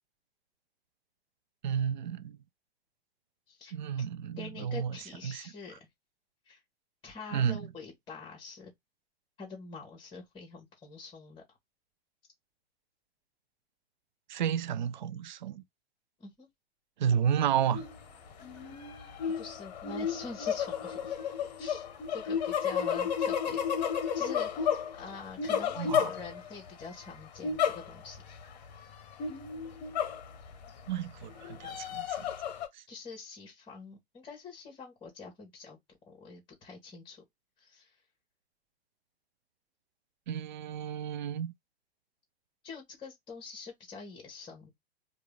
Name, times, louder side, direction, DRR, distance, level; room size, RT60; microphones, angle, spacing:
voice 1, 1.6-2.4 3.7-5.0 5.2-5.4 7.3-7.7 14.3-15.6 17.0-17.8 25.8-26.1 30.9-32.3 32.7-32.8 40.3-41.5, right 8 dB, 45° right, 0.4 m, -31 dB
voice 2, 4.4-5.8 6.4-6.6 7.0-8.7 9.4-11.6 16.2-16.5 19.3-21.2 21.6-23.6 23.9-28.4 32.9-35.8 36.1-37.2 37.6-38.0 42.6-44.7, left 4 dB, 15° left, 1.5 m, -46 dB
sound 1, 17.7-18.0 18.4-26.7 27.4-28.2 28.5-28.6 29.2-30.6 31.2-32.7, left 7 dB, 40° left, 1.0 m, -32 dB
4.6 x 2.5 x 3.4 m
figure-of-eight pair, 105°, 32 cm